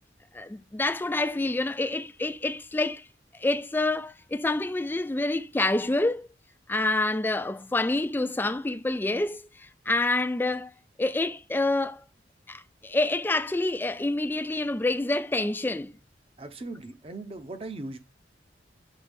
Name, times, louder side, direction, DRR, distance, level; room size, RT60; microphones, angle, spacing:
voice 1, 0.3-3.0 3.4-6.3 6.7-10.7 11.0-12.0 12.5-15.9, left 2 dB, 10° left, 0.3 m, -27 dB
voice 2, 16.4-18.0, right 2 dB, 35° right, 0.8 m, -38 dB
7.3 x 4.0 x 3.5 m
head